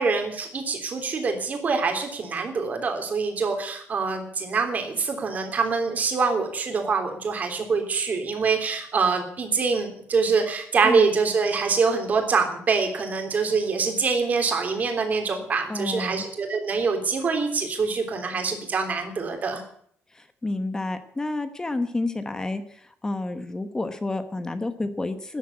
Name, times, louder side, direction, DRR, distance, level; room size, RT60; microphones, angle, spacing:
voice 1, 0.0-19.6, right 4 dB, 30° right, 5 dB, 3.3 m, -25 dB
voice 2, 15.7-16.2 20.1-25.4, left 2 dB, 15° left, 10 dB, 1.0 m, -30 dB
13.5 x 10.0 x 9.7 m, 0.63 s
cardioid pair, 175°, 5 cm